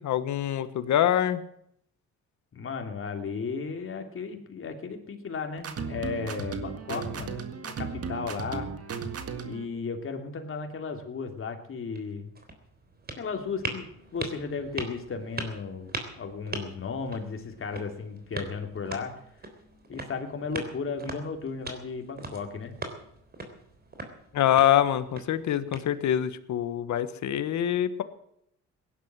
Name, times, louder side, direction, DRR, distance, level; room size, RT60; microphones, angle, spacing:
voice 1, 0.0-1.4 24.3-28.0, left 11 dB, 70° left, 12 dB, 1.3 m, -25 dB
voice 2, 2.5-8.7 9.4-12.3 13.2-15.9 16.2-19.1 19.9-22.7, left 5 dB, 45° left, 4 dB, 3.0 m, -35 dB
sound 1, 5.6-9.6, right 5 dB, 50° right, 1.9 m, -35 dB
sound 2, 11.8-26.3, right 3 dB, 30° right, 3.5 m, -41 dB
17.0 x 11.0 x 7.7 m, 0.73 s
cardioid pair, 90°, 30 cm